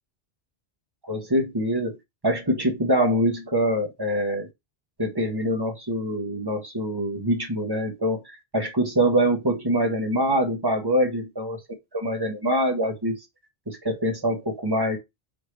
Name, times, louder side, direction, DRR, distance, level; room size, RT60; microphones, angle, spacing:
voice 1, 1.0-2.0 2.2-4.5 5.0-11.6 11.9-13.2 13.7-15.0, equal, 25° right, 1.1 m, -24 dB
4.5 x 3.6 x 3.2 m
omnidirectional pair, 1.1 m